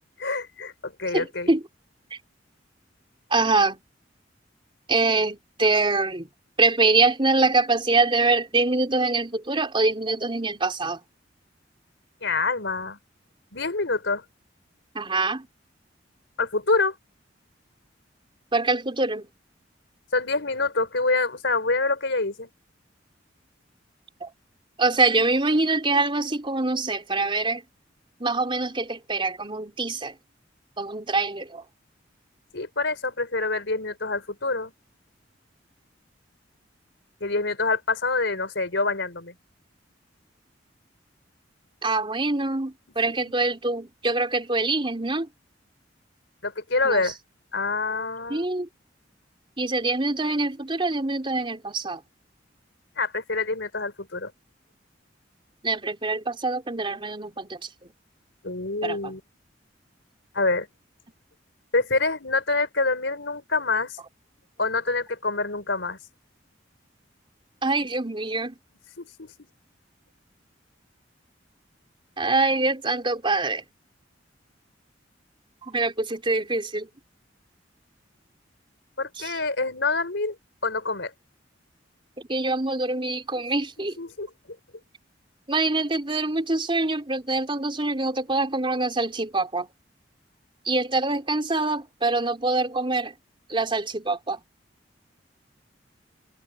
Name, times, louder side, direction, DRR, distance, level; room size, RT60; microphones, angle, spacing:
voice 1, 0.2-1.5 12.2-13.0 13.5-14.2 16.4-17.0 20.1-22.5 32.5-34.7 37.2-39.3 46.4-47.2 47.5-48.4 53.0-54.3 58.4-59.2 60.3-60.7 61.7-64.0 64.6-66.0 69.0-69.3 79.0-80.3 80.6-81.1 84.0-84.3, left 3 dB, 70° left, 5.0 m, -26 dB
voice 2, 1.1-1.6 2.1-2.2 3.3-3.8 4.9-6.3 6.6-11.0 14.9-15.5 18.5-19.3 24.2-24.3 24.8-27.6 28.2-30.2 30.8-31.7 41.8-45.3 46.8-47.1 48.3-48.7 49.6-52.0 55.6-57.9 58.8-59.1 67.6-68.6 72.2-73.6 75.6-76.9 79.2-79.4 82.2-84.0 85.5-89.7 90.6-93.2 93.5-94.4, right 3 dB, 30° right, 4.0 m, -24 dB
open air
head